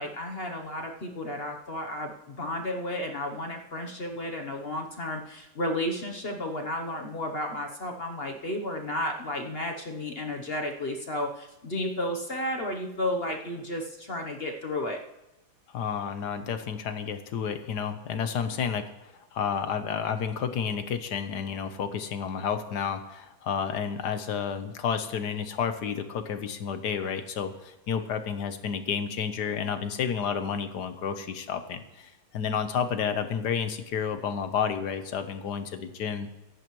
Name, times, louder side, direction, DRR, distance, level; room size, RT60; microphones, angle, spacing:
voice 1, 0.0-15.0, left 1 dB, 45° left, 3 dB, 0.8 m, -32 dB
voice 2, 15.7-36.3, left 7 dB, 60° left, 9 dB, 1.4 m, -31 dB
23.0 x 11.5 x 3.1 m, 0.97 s
omnidirectional pair, 2.2 m